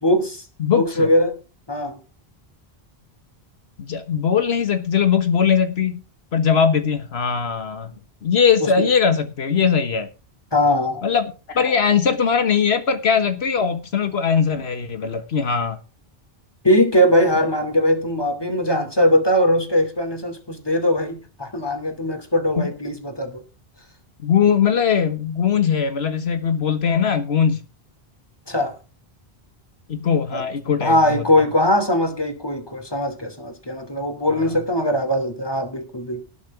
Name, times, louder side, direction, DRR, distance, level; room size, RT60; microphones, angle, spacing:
voice 1, 0.0-1.3 1.7-2.0 8.8-8.9 10.5-11.0 16.6-23.4 28.5-28.7 30.3-30.4 30.8-36.3, left 1 dB, 25° left, 2.8 m, -20 dB
voice 2, 0.6-1.1 3.8-6.0 6.3-7.9 8.2-10.1 11.0-15.8 22.6-22.7 24.2-27.6 29.9-31.2 34.4-34.6, left 7 dB, 85° left, 1.6 m, -20 dB
19.0 x 6.8 x 4.8 m
omnidirectional pair, 1.0 m